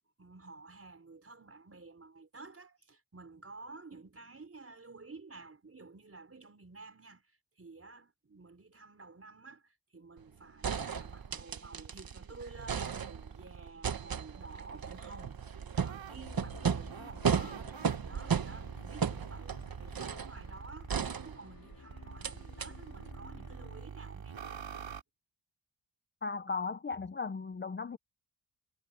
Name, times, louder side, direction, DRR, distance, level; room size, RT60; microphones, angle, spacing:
voice 1, 0.0-17.6 18.1-24.5, right 3 dB, 30° right, 5.0 m, -52 dB
sound 1, 10.2-10.3 10.6-12.2 12.5-13.4 13.8-20.4 20.9-21.8 22.2-22.3 22.6-22.7, right 7 dB, 50° right, 1.1 m, -35 dB
sound 2, 10.6-13.7 14.3-21.4 21.9-25.0, right 6 dB, 70° right, 3.4 m, -47 dB
sound 3, 16.2-23.9, left 5 dB, 50° left, 4.7 m, -54 dB
voice 2, 26.2-28.0, left 4 dB, 25° left, 0.5 m, -36 dB
wide cardioid pair, 175°, 47 cm